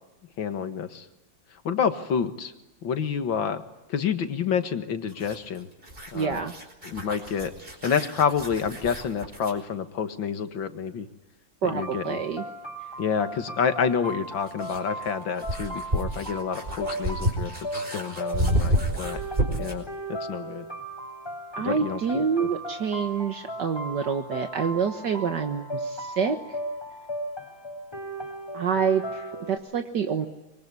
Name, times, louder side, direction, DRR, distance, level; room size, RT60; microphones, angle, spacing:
voice 1, 0.4-1.1 1.6-2.5 2.8-3.6 3.9-5.7 6.1-6.4 6.8-7.5 7.8-11.1 11.6-12.2 13.0-19.2 19.6-20.7 21.6-22.5, left 7 dB, 85° left, 9 dB, 2.4 m, -28 dB
sound 1, 5.1-9.6 12.0-12.1 14.1-19.9, right 1 dB, 25° right, 5.1 m, -30 dB
voice 2, 6.1-6.5 11.6-12.4 21.6-26.4 28.5-30.3, right 6 dB, 65° right, 6 dB, 2.0 m, -27 dB
sound 2, 11.8-29.6, right 1 dB, 15° left, 3.6 m, -37 dB
25.0 x 22.5 x 9.6 m, 1.0 s
omnidirectional pair, 2.1 m